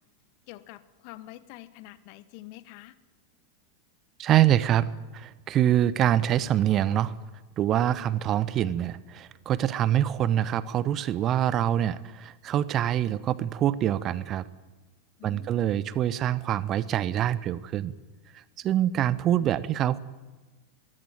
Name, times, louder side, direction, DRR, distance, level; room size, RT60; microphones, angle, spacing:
voice 1, 0.5-3.0 15.2-15.8, left 16 dB, 45° left, 16 dB, 1.1 m, -46 dB
voice 2, 4.2-7.1 7.6-14.4 15.2-17.9 18.6-20.0, right 11 dB, 30° right, 19 dB, 0.8 m, -25 dB
22.5 x 15.5 x 9.1 m, 1.2 s
figure-of-eight pair, 90°, 0 cm